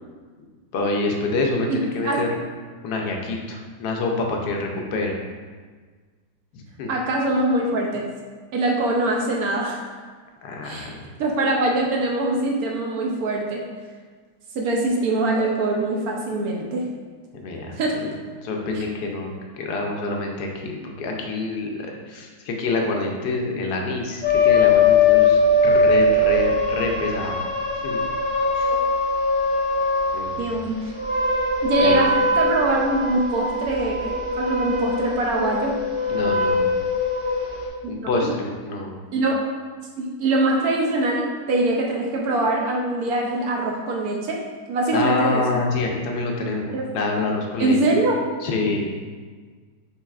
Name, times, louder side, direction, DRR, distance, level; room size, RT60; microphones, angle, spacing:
voice 1, 0.7-2.3 2.8-5.1 6.5-6.9 10.4-11.0 17.4-18.0 18.4-27.4 27.8-28.0 28.5-28.7 30.1-30.4 31.8-32.1 36.1-36.7 37.9-39.0 44.9-47.8 48.4-48.9, left 3 dB, 75° left, 1 dB, 1.2 m, -27 dB
voice 2, 1.7-2.2 6.9-8.0 8.5-9.9 10.6-10.9 11.2-13.6 14.5-16.9 17.7-18.0 18.7-18.8 30.4-30.9 31.6-35.7 38.0-38.3 39.1-39.4 40.0-44.4 44.7-45.6 46.7-46.8 47.6-48.2, right 2 dB, 70° right, 0 dB, 1.0 m, -23 dB
sound 1, 24.2-30.3 30.8-37.7, left 3 dB, 20° right, 1.5 m, -21 dB
4.6 x 4.3 x 2.3 m, 1.5 s
omnidirectional pair, 1.8 m